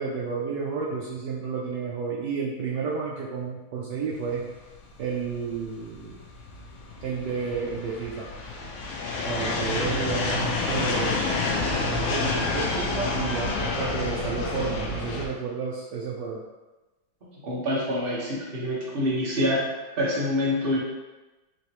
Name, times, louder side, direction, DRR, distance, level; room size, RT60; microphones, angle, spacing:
voice 1, 0.0-4.5 5.0-6.2 7.0-8.3 9.2-11.4 11.8-16.4, right 5 dB, 75° right, -4 dB, 1.0 m, -31 dB
sound 1, 4.3-15.3, left 3 dB, 75° left, 1.5 m, -29 dB
voice 2, 17.4-19.6 20.0-20.8, left 1 dB, 40° right, -6 dB, 0.9 m, -26 dB
4.8 x 3.0 x 3.0 m, 1.1 s
omnidirectional pair, 2.3 m